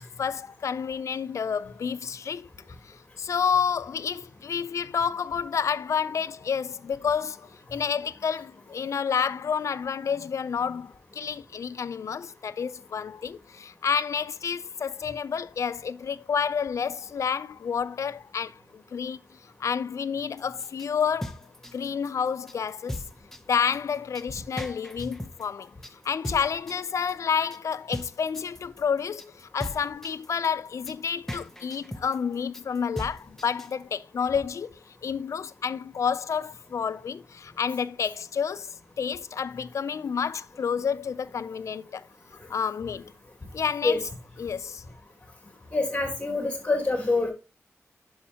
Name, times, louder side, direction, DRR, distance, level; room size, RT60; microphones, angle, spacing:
voice 1, 0.0-2.5 2.8-19.2 19.6-21.4 21.7-23.0 23.5-25.7 26.0-34.7 35.0-42.1 42.5-43.1 43.5-44.0 44.4-44.8, left 7 dB, 85° left, 0.4 m, -29 dB
sound 1, 20.4-33.8, left 1 dB, 5° left, 0.7 m, -39 dB
voice 2, 45.7-47.3, left 3 dB, 25° left, 3.2 m, -25 dB
9.9 x 6.3 x 2.8 m
wide cardioid pair, 140°, 5 cm